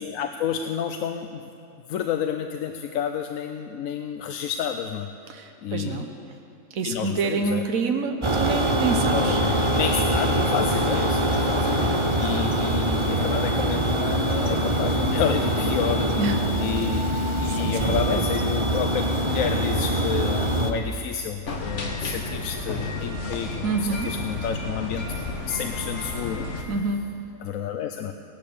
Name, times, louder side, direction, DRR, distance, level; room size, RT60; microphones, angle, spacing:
voice 1, 0.0-1.4 1.9-5.1 5.6-6.0 6.8-7.7 9.1-16.1 16.6-25.0 25.5-26.7 27.4-28.1, left 8 dB, 80° left, 6 dB, 1.0 m, -30 dB
voice 2, 5.3-6.1 6.7-9.4 16.2-16.5 17.5-18.2 23.6-24.1 26.7-27.0, right 4 dB, 80° right, 4 dB, 1.4 m, -27 dB
sound 1, 8.2-20.7, right 1 dB, 25° right, 0.8 m, -23 dB
sound 2, 21.5-26.6, left 2 dB, 60° left, 1.7 m, -32 dB
17.0 x 12.0 x 6.9 m, 2.6 s
omnidirectional pair, 1.4 m